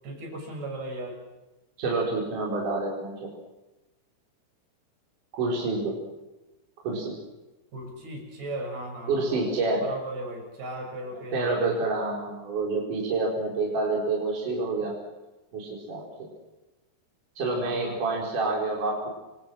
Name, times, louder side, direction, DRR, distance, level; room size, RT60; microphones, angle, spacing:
voice 1, 0.0-1.2 7.7-9.5 9.8-11.8 17.6-18.0, right 1 dB, 75° right, 1 dB, 8.5 m, -37 dB
voice 2, 1.8-3.3 5.3-6.0 6.8-7.1 9.1-9.8 11.1-15.0 15.5-16.3 17.4-19.1, right 3 dB, 50° right, -3 dB, 5.8 m, -28 dB
28.5 x 25.5 x 6.4 m, 1.1 s
omnidirectional pair, 4.7 m